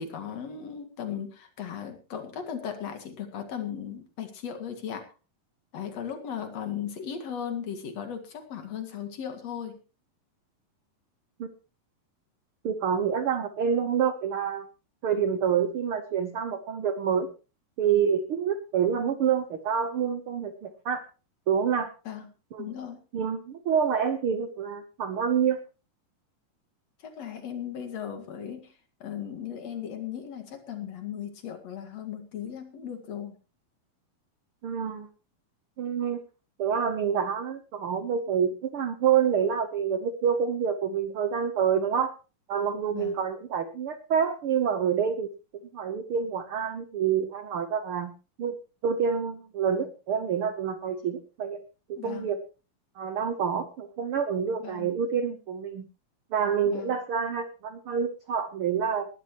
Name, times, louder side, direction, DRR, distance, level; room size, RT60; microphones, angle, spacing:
voice 1, 0.0-5.0 5.7-9.8 22.1-22.2 22.6-23.0 27.0-28.7 29.0-33.3 42.9-43.2 52.0-52.3 54.6-54.9 56.7-56.9, left 8 dB, 50° left, 6 dB, 2.9 m, -37 dB
voice 2, 12.6-14.7 15.0-17.3 17.8-21.0 21.5-21.9 22.5-22.7 23.1-25.6 34.6-35.1 35.8-36.2 36.6-42.1 42.5-45.3 45.7-48.1 48.4-48.5 48.8-51.6 51.9-52.4 53.0-55.8 56.3-59.1, right 7 dB, 90° right, 9 dB, 1.2 m, -27 dB
20.0 x 11.5 x 3.0 m, 0.33 s
omnidirectional pair, 4.0 m